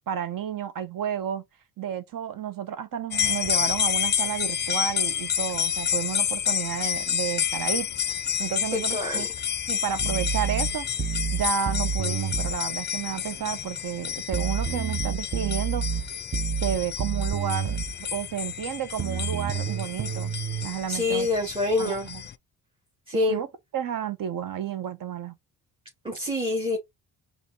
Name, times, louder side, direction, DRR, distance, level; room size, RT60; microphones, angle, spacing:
voice 1, 0.1-1.4 1.8-7.9 8.4-9.3 9.7-10.9 11.3-15.8 16.6-17.8 18.1-20.3 20.6-21.3 21.8-22.2 23.1-23.5 23.7-25.3, right 9 dB, 55° right, 0.9 m, -31 dB
sound 1, 3.1-22.3, left 9 dB, 25° left, 0.4 m, -29 dB
voice 2, 8.7-9.2 20.9-22.1 23.1-23.4 26.0-26.8, left 2 dB, 15° right, 1.3 m, -26 dB
sound 2, 10.0-12.6 14.3-17.9 19.0-20.7, right 6 dB, 30° right, 0.8 m, -29 dB
5.0 x 3.4 x 3.0 m
supercardioid pair, 70°, 40 cm